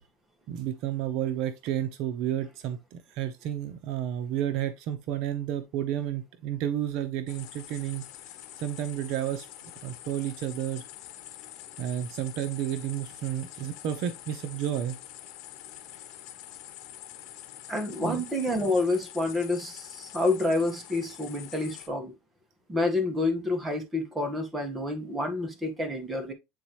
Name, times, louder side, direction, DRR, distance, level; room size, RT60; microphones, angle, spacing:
voice 1, 0.5-8.0 8.6-9.5 9.8-10.8 11.8-15.0 18.0-18.2, right 11 dB, 60° right, 0.8 m, -31 dB
sound 1, 7.3-21.9, left 13 dB, 60° left, 1.2 m, -46 dB
voice 2, 17.7-22.1 22.7-26.3, left 2 dB, 10° right, 1.6 m, -28 dB
8.6 x 4.2 x 3.0 m
cardioid pair, 145°, 0 cm